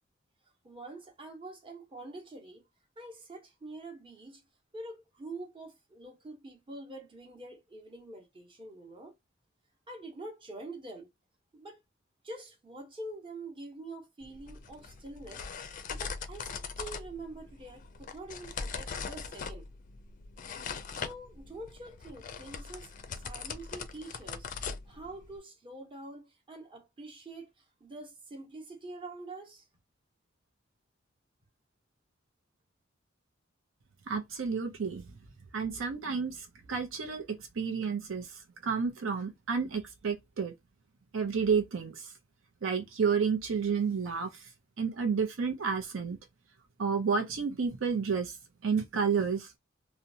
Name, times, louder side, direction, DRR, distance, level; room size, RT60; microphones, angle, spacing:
voice 1, 0.6-2.6 3.0-4.4 4.7-9.1 9.9-11.1 11.5-11.8 12.2-15.5 15.9-16.5 16.8-19.7 20.9-29.6, right 2 dB, 25° right, 0.8 m, -46 dB
sound 1, 14.2-25.4, left 5 dB, 40° left, 0.4 m, -41 dB
voice 2, 34.1-35.0 35.5-40.5 41.1-42.1 42.6-44.4 44.8-46.2 46.8-48.4 48.6-49.5, right 5 dB, 75° right, 0.5 m, -31 dB
2.8 x 2.1 x 2.7 m
head